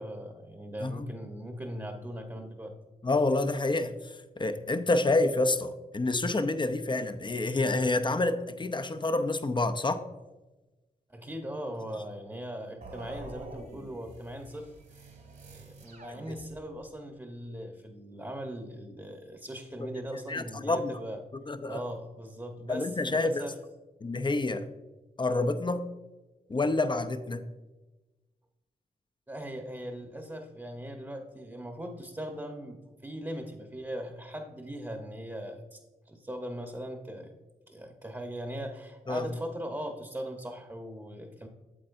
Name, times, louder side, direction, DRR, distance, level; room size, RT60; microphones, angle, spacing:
voice 1, 0.0-2.7 11.1-15.1 15.4-21.2 21.7-23.6 29.3-35.8 36.1-37.3 37.7-41.5, equal, 15° right, 2 dB, 1.1 m, -40 dB
voice 2, 3.0-10.0 19.8-19.9 20.3-20.9 21.3-21.8 22.7-23.4 24.0-24.6 25.2-25.9 26.5-27.4 39.1-39.3, left 2 dB, 30° left, 9 dB, 0.6 m, -28 dB
sound 1, 12.8-16.9, right 2 dB, 60° right, 2.0 m, -48 dB
8.7 x 7.5 x 2.6 m, 1.1 s
cardioid pair, 55°, 17 cm